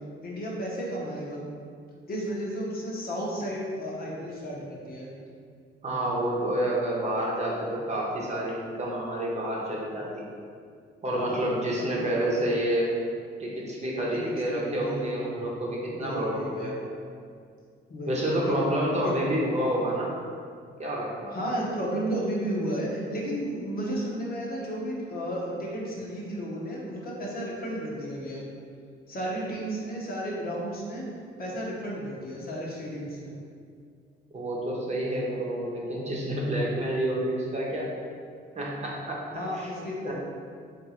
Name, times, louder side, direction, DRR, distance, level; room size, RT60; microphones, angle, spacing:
voice 1, 0.2-1.4 2.1-5.1 11.1-11.4 11.8-12.2 14.2-15.1 15.9-16.7 17.9-18.6 19.0-19.1 21.3-28.4 29.1-31.0 31.4-33.3 39.3-40.1, equal, 50° left, -4 dB, 1.0 m, -33 dB
voice 2, 5.8-10.2 11.0-12.9 13.4-16.9 18.1-20.1 20.8-21.4 34.3-37.9 38.5-39.2 39.5-39.7 40.1-40.2, right 1 dB, 35° right, -4 dB, 0.9 m, -29 dB
3.6 x 2.6 x 4.2 m, 2.2 s
cardioid pair, 90°, 20 cm